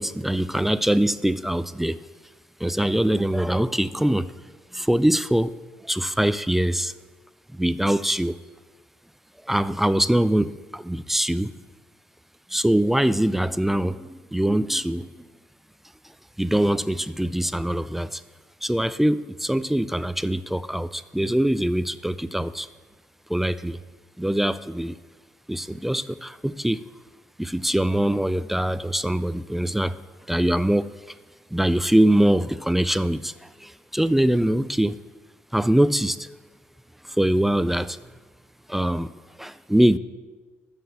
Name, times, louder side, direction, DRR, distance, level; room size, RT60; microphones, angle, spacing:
voice 1, 0.0-2.0 2.6-4.3 4.7-5.6 5.8-6.9 7.5-8.4 9.5-11.5 12.5-15.1 16.4-18.2 18.6-22.7 23.3-23.8 24.2-25.0 25.5-26.8 27.4-29.9 30.3-30.9 31.5-35.0 35.5-36.3 37.1-38.0 38.7-39.1 39.4-40.0, right 1 dB, 5° right, 15 dB, 0.3 m, -23 dB
7.5 x 6.6 x 7.0 m, 1.3 s
cardioid pair, 90°, 5 cm